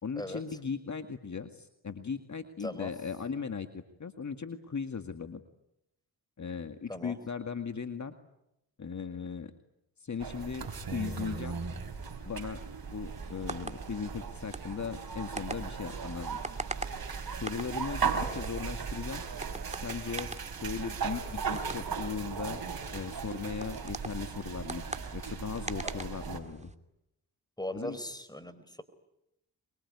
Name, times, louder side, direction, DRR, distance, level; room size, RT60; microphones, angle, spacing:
voice 1, 0.0-5.4 6.4-8.1 8.8-9.5 10.0-11.6 12.2-12.6 12.9-16.4 17.3-19.2 19.7-20.3 20.6-22.6 22.9-24.8 25.1-26.7 27.7-28.0, left 5 dB, 40° left, 8 dB, 2.1 m, -38 dB
sound 1, 10.2-26.4, right 5 dB, 55° right, 4.8 m, -37 dB
sound 2, 13.2-26.7, right 2 dB, 15° right, 2.6 m, -44 dB
voice 2, 27.6-28.8, left 1 dB, 10° left, 13 dB, 4.7 m, -39 dB
25.5 x 22.5 x 9.7 m, 0.85 s
supercardioid pair, 50°, 42 cm